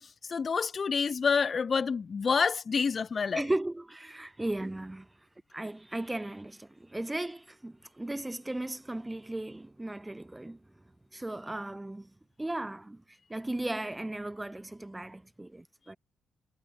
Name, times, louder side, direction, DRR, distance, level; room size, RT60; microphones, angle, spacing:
voice 1, 0.3-3.4, left 5 dB, 40° left, 1.5 m, -28 dB
voice 2, 3.3-5.1 5.5-10.6 11.1-12.1 12.4-13.0 13.3-16.0, right 1 dB, 10° right, 4.7 m, -36 dB
cardioid pair, 90°, 0 cm